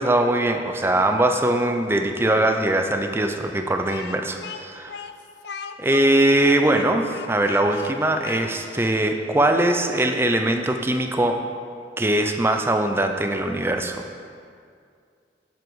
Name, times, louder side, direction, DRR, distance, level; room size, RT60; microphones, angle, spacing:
voice 1, 0.0-4.9 5.8-11.4 12.0-14.0, right 1 dB, 15° right, 5 dB, 0.5 m, -21 dB
Speech, 3.9-9.0, left 5 dB, 75° left, 0.5 m, -38 dB
7.8 x 7.3 x 4.7 m, 2.3 s
head